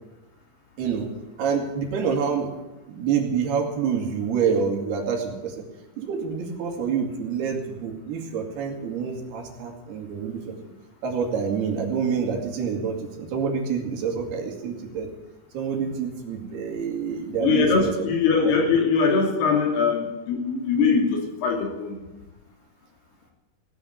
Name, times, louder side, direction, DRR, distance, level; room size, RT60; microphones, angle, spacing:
voice 1, 0.8-1.1 1.4-2.5 2.9-5.6 6.0-10.5 11.0-15.1 15.5-18.1 18.4-18.5, right 6 dB, 80° right, 2 dB, 4.4 m, -27 dB
voice 2, 17.4-22.0, left 5 dB, 85° left, 1 dB, 5.0 m, -22 dB
17.5 x 9.4 x 8.1 m, 1.1 s
omnidirectional pair, 4.5 m